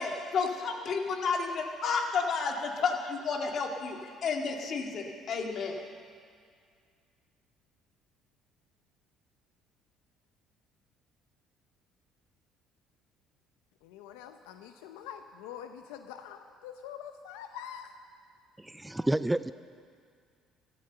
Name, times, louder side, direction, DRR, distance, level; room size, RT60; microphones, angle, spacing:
voice 1, 0.0-5.7, left 5 dB, 55° left, 2 dB, 2.2 m, -31 dB
voice 2, 13.8-17.9, left 9 dB, 85° left, 7 dB, 0.6 m, -45 dB
voice 3, 18.6-19.5, right 1 dB, 10° right, 15 dB, 0.4 m, -29 dB
15.0 x 13.0 x 6.8 m, 2.2 s
supercardioid pair, 70°, 0 cm